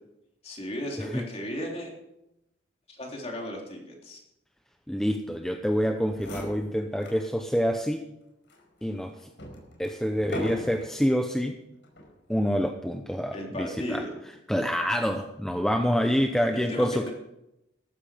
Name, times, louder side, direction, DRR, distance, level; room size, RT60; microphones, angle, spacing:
voice 1, 0.4-1.9 2.9-4.2 13.3-14.1 16.5-17.1, equal, 35° left, 0 dB, 3.4 m, -35 dB
voice 2, 4.9-8.0 8.8-9.1 9.8-11.6 12.3-14.0 14.5-17.1, equal, 5° left, 5 dB, 0.7 m, -27 dB
sound 1, 5.8-5.9 6.1-7.3 7.7-7.8 8.5-11.1 11.8-12.2, left 1 dB, 85° left, 5.1 m, -39 dB
14.5 x 13.0 x 5.0 m, 0.87 s
head